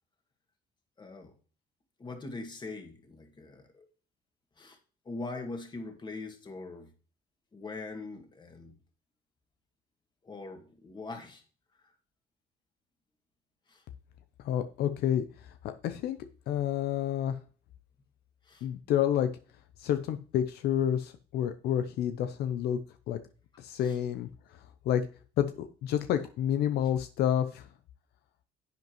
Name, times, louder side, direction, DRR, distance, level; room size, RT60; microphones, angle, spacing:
voice 1, 1.0-1.4 2.0-3.9 4.6-4.8 5.1-6.9 7.5-8.8 10.2-11.4 11.7-11.9 13.7-13.8 18.4-18.7 23.8-24.0, left 3 dB, 25° left, 4 dB, 2.0 m, -42 dB
voice 2, 14.4-16.2 16.5-17.4 18.6-19.3 19.8-22.8 23.1-23.2 23.6-25.1 25.4-27.7, left 10 dB, 75° left, 9 dB, 0.7 m, -29 dB
10.5 x 8.1 x 3.1 m, 0.38 s
cardioid pair, 110°, 17 cm